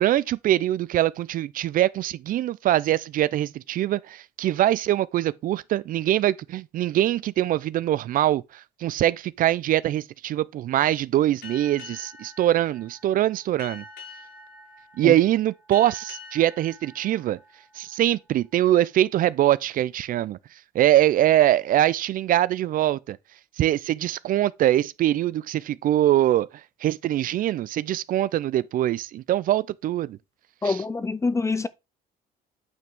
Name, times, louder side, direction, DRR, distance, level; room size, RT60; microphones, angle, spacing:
voice 1, 0.0-13.8 15.0-17.4 17.7-20.4 20.7-23.2 23.6-26.5 26.8-30.2 30.6-30.8, right 13 dB, 55° right, 0.4 m, -23 dB
Boat Water vehicle, 11.4-18.5, left 4 dB, 70° left, 5.4 m, -46 dB
voice 2, 30.6-31.7, left 4 dB, 15° left, 0.6 m, -25 dB
9.2 x 5.9 x 3.5 m
cardioid pair, 110°, 17 cm